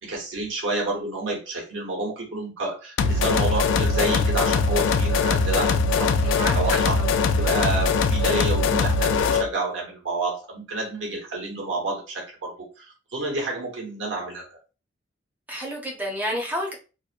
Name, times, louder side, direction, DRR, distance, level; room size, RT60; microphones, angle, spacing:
voice 1, 0.0-7.0 7.4-14.6, right 2 dB, 90° right, -1 dB, 1.0 m, -29 dB
sound 1, 3.0-9.5, left 4 dB, 90° left, 0.3 m, -21 dB
voice 2, 6.2-7.1 15.5-16.7, equal, 10° right, 0 dB, 0.6 m, -30 dB
2.7 x 2.1 x 2.5 m, 0.32 s
head